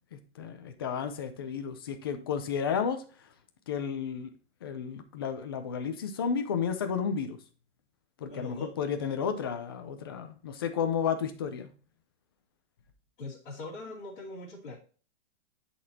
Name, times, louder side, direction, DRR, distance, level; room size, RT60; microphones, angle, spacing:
voice 1, 0.1-3.0 3.7-4.3 4.6-7.4 8.2-11.7, left 7 dB, 20° left, 7 dB, 0.4 m, -32 dB
voice 2, 8.3-8.7 13.2-14.8, left 2 dB, 45° left, -8 dB, 2.7 m, -41 dB
10.5 x 4.2 x 2.7 m, 0.39 s
supercardioid pair, 175°, 36 cm